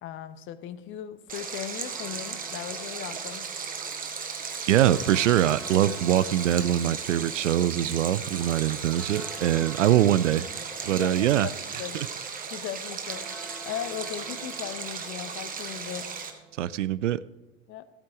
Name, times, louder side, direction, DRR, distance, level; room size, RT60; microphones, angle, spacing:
voice 1, 0.0-3.5 10.9-12.0 12.5-13.3 13.6-16.0 17.7-17.8, left 10 dB, 30° left, 13 dB, 0.8 m, -37 dB
Stream, 1.3-16.3, right 5 dB, 20° right, 1.6 m, -36 dB
sound 1, 1.9-16.8, right 2 dB, ahead, 1.9 m, -50 dB
voice 2, 4.7-10.5 10.8-11.5 11.9-12.1 16.6-17.2, right 12 dB, 60° right, 18 dB, 0.5 m, -23 dB
15.0 x 8.9 x 4.9 m, 1.1 s
figure-of-eight pair, 85°, 42 cm